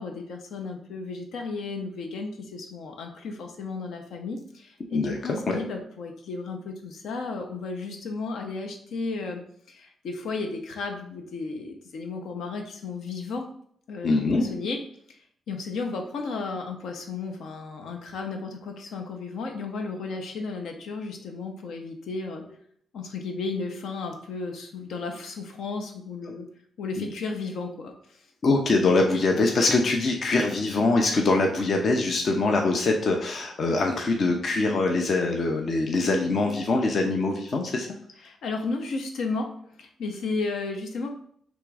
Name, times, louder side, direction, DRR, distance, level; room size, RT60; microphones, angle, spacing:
voice 1, 0.0-9.4 9.7-13.5 13.9-14.8 15.5-22.5 22.9-26.5 26.8-27.9 38.2-39.5 39.8-41.1, left 3 dB, 75° left, 3 dB, 0.7 m, -34 dB
voice 2, 4.9-5.6 14.0-14.4 27.0-27.1 28.4-37.9, left 3 dB, 40° left, 2 dB, 0.5 m, -23 dB
3.5 x 3.0 x 4.8 m, 0.63 s
wide cardioid pair, 170°, 0 cm